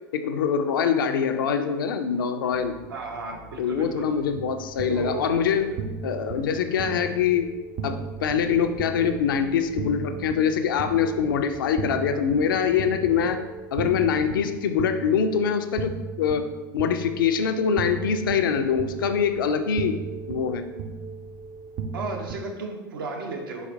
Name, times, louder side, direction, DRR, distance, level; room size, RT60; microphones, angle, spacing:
voice 1, 0.1-2.8 3.6-5.7 6.0-7.5 7.8-13.4 13.7-16.5 16.7-20.0 20.3-20.7, left 7 dB, 70° left, 8 dB, 0.4 m, -24 dB
sound 1, 2.5-4.3 4.8-7.4 7.8-10.3 10.8-13.3 13.8-14.4, right 2 dB, 55° right, 1.0 m, -45 dB
voice 2, 2.9-4.1 4.9-5.2 21.9-23.7, right 3 dB, 75° right, 1 dB, 0.8 m, -33 dB
sound 2, 4.4-22.4, right 5 dB, 40° right, 0.4 m, -36 dB
4.1 x 4.0 x 2.6 m, 1.2 s
figure-of-eight pair, 80°, 12 cm